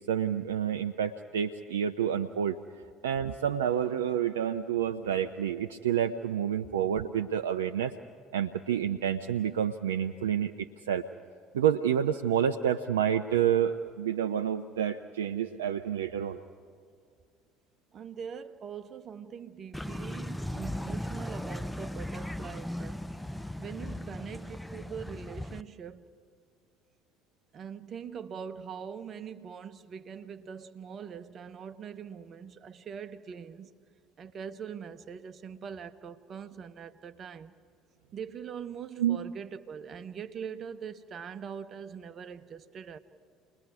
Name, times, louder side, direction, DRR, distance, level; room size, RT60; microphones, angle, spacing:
voice 1, 0.1-2.6 3.0-7.9 8.3-11.0 11.5-16.4 39.0-39.2, right 9 dB, 80° right, 7 dB, 0.5 m, -29 dB
voice 2, 17.9-23.1 23.6-26.0 27.5-33.7 34.2-37.5 38.1-43.0, right 7 dB, 45° right, 10 dB, 1.0 m, -42 dB
sound 1, 19.7-25.6, left 1 dB, 5° left, 0.6 m, -37 dB
29.5 x 21.0 x 4.8 m, 2.2 s
hypercardioid pair, 60°, 0 cm